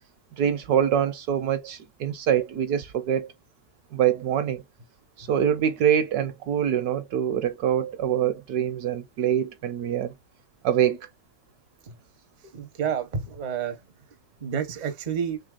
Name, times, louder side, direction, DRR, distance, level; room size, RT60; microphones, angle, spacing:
voice 1, 0.4-3.3 3.9-4.6 5.2-10.1 10.6-11.1, right 9 dB, 70° right, 1.0 m, -24 dB
voice 2, 12.5-13.8 14.4-15.4, right 7 dB, 50° right, 0.5 m, -29 dB
4.0 x 3.3 x 2.4 m
omnidirectional pair, 2.0 m